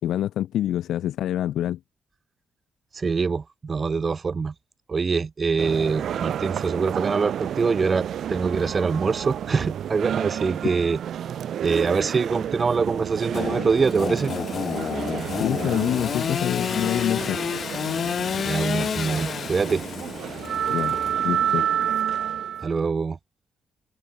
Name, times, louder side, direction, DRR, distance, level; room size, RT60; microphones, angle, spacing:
voice 1, 0.0-1.8 15.4-17.4 20.7-21.0 21.2-21.7, left 12 dB, 80° left, 5.8 m, -26 dB
voice 2, 2.9-4.5 4.9-11.0 11.6-14.3 18.4-19.8 22.6-23.2, right 5 dB, 30° right, 7.3 m, -24 dB
sound 1, 5.6-22.7, right 9 dB, 60° right, 5.0 m, -30 dB
Engine / Sawing, 13.3-21.6, left 7 dB, 45° left, 6.7 m, -30 dB
cardioid pair, 145°, 0 cm